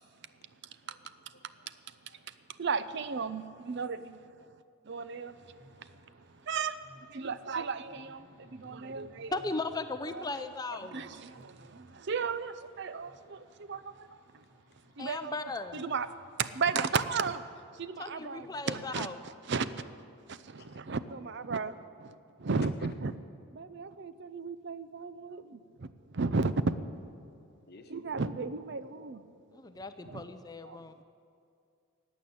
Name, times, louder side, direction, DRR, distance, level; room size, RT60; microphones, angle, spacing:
voice 1, 0.1-2.3 6.4-6.5 8.6-8.8 20.6-20.8 22.6-22.9 27.7-28.3, left 4 dB, 50° left, 7 dB, 1.0 m, -58 dB
voice 2, 2.5-4.3 4.9-6.8 7.1-9.3 10.1-10.4 10.7-14.4 15.0-16.1 16.4-17.5 17.7-19.9 20.3-23.1 23.5-27.1 27.9-29.2 30.1-30.3 30.6-30.8, right 4 dB, 55° right, 13 dB, 0.5 m, -35 dB
sound 1, 5.2-18.7, equal, 85° right, 3.8 m, -60 dB
voice 3, 9.3-11.1 15.0-15.8 18.0-19.2 29.5-31.0, left 3 dB, 20° left, 9 dB, 0.5 m, -37 dB
15.0 x 9.2 x 8.6 m, 2.4 s
head